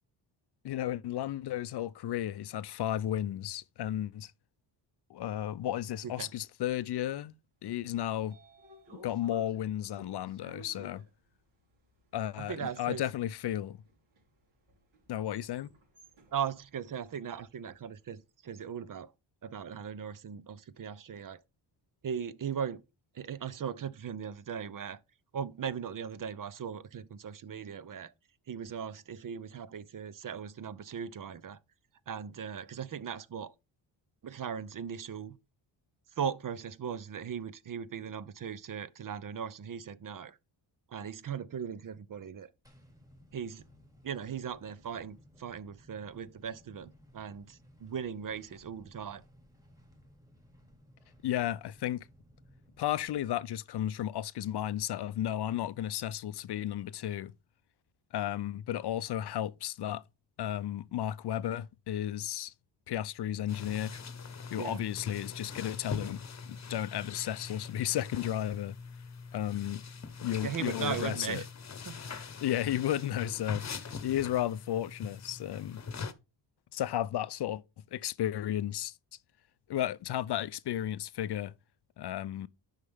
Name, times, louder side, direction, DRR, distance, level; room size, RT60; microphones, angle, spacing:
voice 1, 0.6-4.3 5.1-7.3 7.6-8.4 9.0-11.0 12.1-13.8 15.1-15.7 51.2-52.1 52.8-57.3 58.1-60.0 60.4-62.5 62.9-63.9 64.5-68.7 69.3-69.8 70.2-71.4 72.4-75.8 76.7-77.6 77.9-78.9 79.7-81.5 82.0-82.5, left 12 dB, 55° left, 0.5 m, -33 dB
Train / Sliding door, 7.7-17.9, right 1 dB, 75° right, 4.2 m, -58 dB
voice 2, 12.4-13.0 16.3-19.1 19.4-21.4 22.0-22.8 23.1-25.0 25.3-28.1 28.5-31.6 32.1-33.5 34.2-35.4 36.2-40.4 40.9-42.5 43.3-43.6 44.0-49.2 64.6-64.8 70.4-71.4 71.9-72.0, right 7 dB, 45° right, 0.7 m, -38 dB
sound 1, 42.6-53.2, equal, 5° right, 2.4 m, -60 dB
sound 2, 63.5-76.1, left 5 dB, 35° left, 1.0 m, -43 dB
9.9 x 5.7 x 3.5 m
cardioid pair, 115°, 47 cm